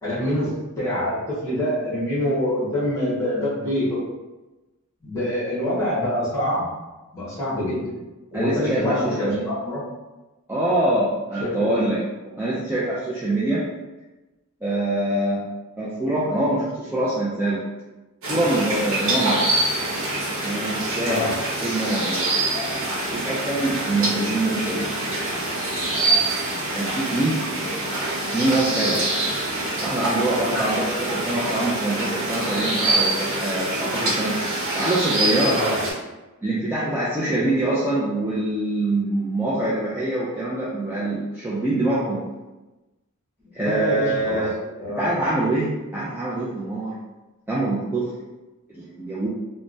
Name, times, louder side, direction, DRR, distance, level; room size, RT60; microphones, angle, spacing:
voice 1, 0.0-4.0 5.0-6.7 7.1-7.9 8.3-9.8 11.4-11.7 21.1-21.3 35.5-35.8 37.3-37.4 43.6-44.4 44.8-45.2, left 1 dB, 15° left, -9 dB, 1.2 m, -25 dB
voice 2, 8.3-9.5 10.5-12.0 12.4-13.6 14.6-15.5 15.8-17.6 18.3-19.4 20.4-21.3 21.6-22.2 23.1-24.9 26.7-27.4 28.3-29.0 29.8-34.4 34.7-35.6 36.4-42.2 43.5-44.5 45.0-46.9 47.5-48.1 48.7-49.3, right 1 dB, 10° right, -8 dB, 0.3 m, -24 dB
sound 1, 18.2-35.9, right 2 dB, 60° right, 0.9 m, -25 dB
3.2 x 2.1 x 2.6 m, 1.1 s
head